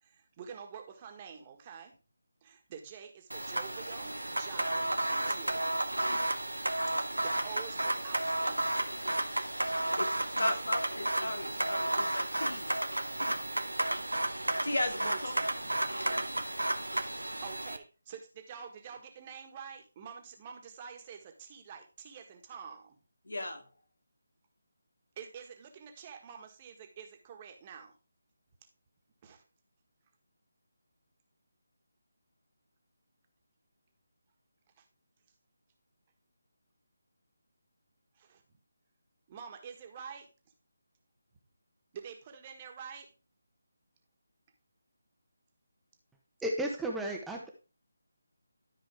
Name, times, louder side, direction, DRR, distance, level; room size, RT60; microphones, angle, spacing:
voice 1, 0.0-1.9 2.4-5.8 7.0-9.2 10.5-10.6 13.1-13.5 15.0-16.0 16.3-16.5 17.4-23.0 25.1-27.9 29.2-29.4 34.8-34.9 38.1-38.4 39.3-40.3 41.9-43.1, right 7 dB, 25° right, 3 dB, 1.7 m, -47 dB
sound 1, 3.3-17.8, right 1 dB, 85° right, 1.1 m, -32 dB
voice 2, 10.4-12.7 14.6-15.3 23.3-23.6, left 1 dB, 75° left, 4 dB, 2.3 m, -35 dB
voice 3, 46.4-47.5, right 1 dB, 5° right, 0 dB, 1.1 m, -33 dB
13.0 x 5.0 x 3.5 m, 0.31 s
figure-of-eight pair, 155°, 0 cm